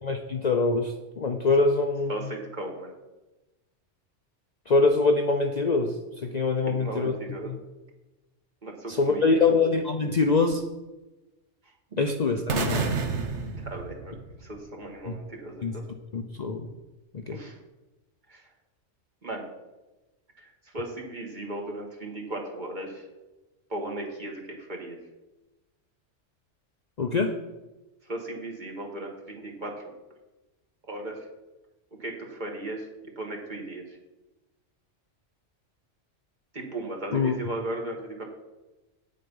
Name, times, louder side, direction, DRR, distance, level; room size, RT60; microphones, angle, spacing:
voice 1, 0.0-2.3 4.7-7.2 7.5-7.6 8.9-10.6 12.0-12.9 15.1-15.2 15.6-15.8 16.1-16.7 17.1-17.4 27.0-27.3 37.1-37.3, left 3 dB, 45° left, 4 dB, 0.6 m, -24 dB
voice 2, 2.1-2.9 6.7-7.5 8.6-9.4 11.9-12.0 13.6-14.2 14.4-15.8 17.3-17.5 18.3-18.4 19.2-19.5 20.7-23.0 23.7-25.0 28.1-29.7 30.9-31.2 32.0-32.8 33.2-33.8 36.5-38.2, right 1 dB, 40° right, 1 dB, 1.7 m, -36 dB
sound 1, 12.5-14.6, right 4 dB, 70° right, 1.3 m, -29 dB
8.7 x 7.6 x 5.4 m, 1.1 s
omnidirectional pair, 1.2 m